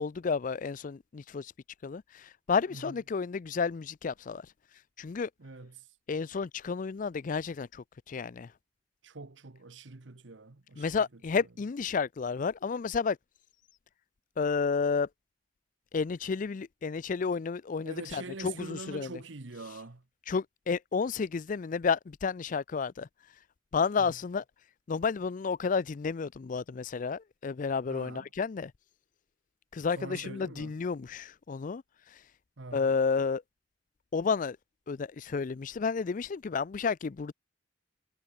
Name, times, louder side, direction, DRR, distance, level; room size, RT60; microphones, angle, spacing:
voice 1, 0.0-1.5 1.8-4.4 5.0-5.3 6.1-8.5 10.8-13.2 14.4-15.1 15.9-19.1 20.3-23.1 23.7-24.4 24.9-28.7 29.7-31.8 32.7-33.4 34.1-34.6 34.9-37.3, left 5 dB, 45° left, 0.4 m, -31 dB
voice 2, 5.4-5.9 9.0-11.0 17.8-20.0 24.0-24.2 27.9-28.3 30.0-30.7 32.6-33.0, right 3 dB, 80° right, 1.1 m, -44 dB
head